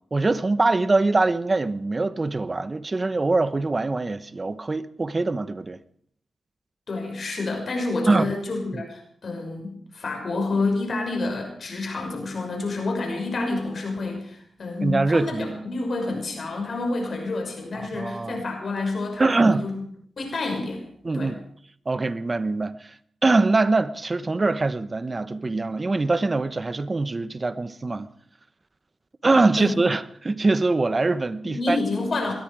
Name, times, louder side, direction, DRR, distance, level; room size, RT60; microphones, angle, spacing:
voice 1, 0.1-5.8 8.1-8.3 8.7-8.8 14.8-15.6 17.7-18.4 19.2-19.7 21.0-21.4 21.9-22.9 23.2-28.1 29.2-31.8, right 3 dB, 35° right, 1.0 m, -23 dB
voice 2, 6.9-19.7 20.2-20.8 21.1-21.3 29.6-29.7 31.4-32.3, left 3 dB, 60° left, 6.2 m, -28 dB
20.0 x 13.5 x 5.0 m
supercardioid pair, 50°, 0 cm